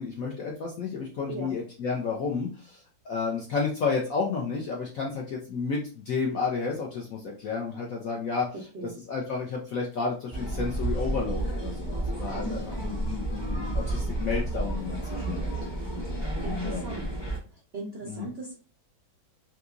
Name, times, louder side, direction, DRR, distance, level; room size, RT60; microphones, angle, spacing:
voice 1, 0.0-8.5 8.8-15.6 16.6-16.9 18.0-18.3, left 4 dB, 75° left, -2 dB, 0.8 m, -31 dB
voice 2, 8.5-9.0 12.3-12.9 16.4-17.1 17.5-18.6, right 2 dB, 80° right, 0 dB, 0.5 m, -38 dB
sound 1, 10.3-17.4, right 1 dB, 25° left, 0.6 m, -31 dB
3.6 x 2.8 x 2.4 m, 0.37 s
omnidirectional pair, 2.1 m